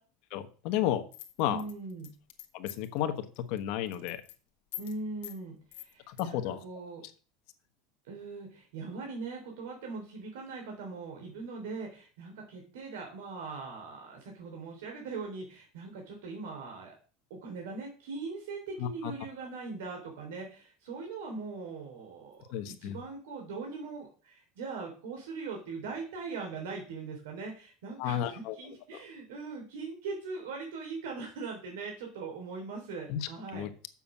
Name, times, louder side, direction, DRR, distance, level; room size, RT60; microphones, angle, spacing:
voice 1, 0.3-1.0 1.4-1.6 2.5-4.2 6.1-6.6 18.8-19.1 22.5-23.0 28.0-28.6 33.1-33.7, left 11 dB, 55° left, 9 dB, 1.2 m, -32 dB
sound 1, 1.1-3.0 3.3-3.6 3.9-4.3 4.7-5.0 5.2-5.4 5.7-6.2, left 14 dB, 80° left, 1.5 m, -44 dB
voice 2, 1.4-2.1 4.8-7.0 8.0-16.9 17.3-33.7, right 4 dB, 90° right, 1 dB, 3.3 m, -41 dB
7.3 x 6.0 x 7.2 m, 0.38 s
supercardioid pair, 160°, 0 cm